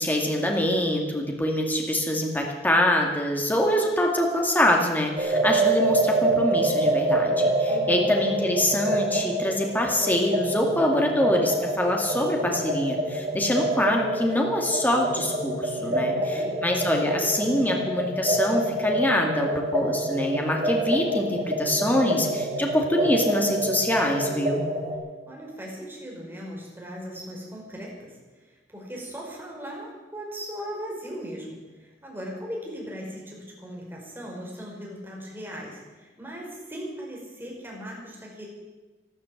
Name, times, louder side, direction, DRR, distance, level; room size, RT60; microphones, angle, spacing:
voice 1, 0.0-24.6, left 1 dB, 10° left, 1 dB, 2.3 m, -25 dB
sound 1, 5.2-25.0, right 1 dB, 40° right, 2.6 m, -27 dB
voice 2, 7.7-8.1 15.7-16.6 25.3-38.5, equal, 15° right, -3 dB, 4.9 m, -38 dB
13.0 x 12.5 x 8.5 m, 1.3 s
head